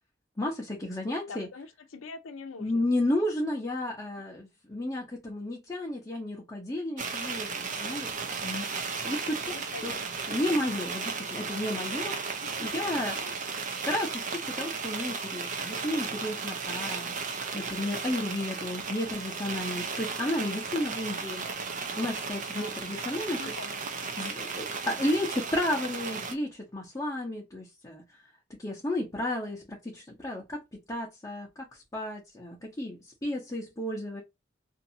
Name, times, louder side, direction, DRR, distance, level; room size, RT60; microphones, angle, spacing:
voice 1, 0.4-1.5 2.6-8.1 8.4-8.7 9.0-9.5 9.8-9.9 10.3-13.2 13.8-17.1 17.5-21.4 21.9-23.5 24.2-28.0 28.6-34.2, left 1 dB, 15° left, 0.7 m, -32 dB
voice 2, 1.3-2.9 9.5-10.0 12.4-12.8 13.1-13.3 16.8-17.2 22.5-22.9 23.1-24.3, left 4 dB, 90° left, 0.6 m, -45 dB
sound 1, 7.0-26.3, right 5 dB, 40° right, 0.6 m, -35 dB
2.7 x 2.6 x 2.5 m
head